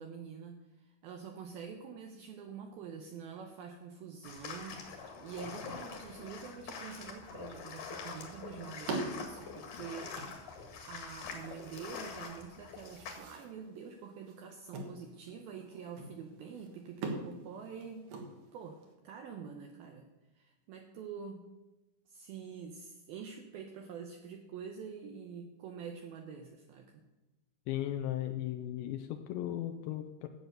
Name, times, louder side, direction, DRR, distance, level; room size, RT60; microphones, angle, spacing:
voice 1, 0.0-10.6 10.9-18.1 18.5-20.1 20.4-21.5 22.1-27.0, right 6 dB, 85° right, 4 dB, 2.1 m, -46 dB
sound 1, 4.2-13.2, left 5 dB, 55° left, 2.5 m, -45 dB
sound 2, 8.4-18.9, right 3 dB, 60° right, 2.5 m, -45 dB
voice 2, 27.7-30.3, left 12 dB, 85° left, 5 dB, 2.8 m, -36 dB
13.5 x 8.1 x 6.6 m, 1.1 s
omnidirectional pair, 5.5 m